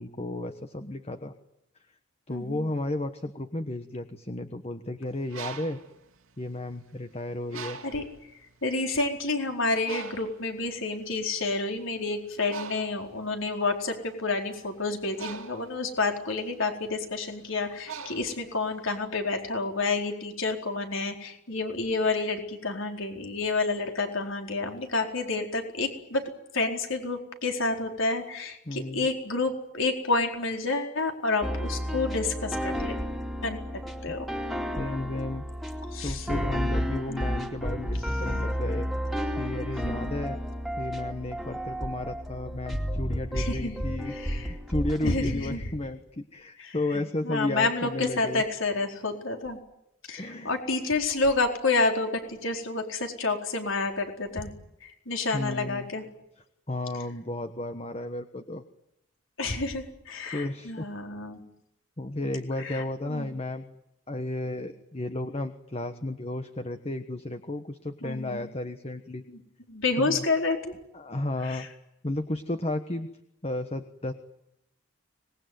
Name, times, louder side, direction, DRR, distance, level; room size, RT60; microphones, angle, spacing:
voice 1, 0.0-1.3 2.3-5.8 6.4-7.8 28.7-29.1 34.1-34.2 34.8-35.5 36.0-38.9 39.4-40.4 40.8-48.4 50.2-50.6 55.3-55.9 56.7-58.6 60.2-60.9 62.0-63.7 64.1-69.3 70.0-70.2 70.9-71.7 72.0-73.1 73.4-74.1, left 2 dB, 30° left, 8 dB, 1.3 m, -33 dB
voice 2, 2.3-2.7 7.8-8.0 8.6-26.2 26.5-33.0 33.4-33.7 34.0-34.3 35.9-36.3 37.1-37.3 39.8-40.1 43.3-44.5 45.0-45.6 46.6-49.6 50.1-54.5 54.8-56.0 59.4-61.4 62.6-63.3 68.0-68.5 69.3-69.4 69.7-70.7 71.4-71.7, left 3 dB, 65° left, 3 dB, 4.4 m, -29 dB
Bird, 5.1-7.0 7.5-8.2 8.9-9.0 9.3-19.0, right 5 dB, 75° right, 2.5 m, -43 dB
sound 1, 31.4-45.2, equal, ahead, 2.6 m, -32 dB
25.5 x 20.5 x 9.4 m, 0.83 s
head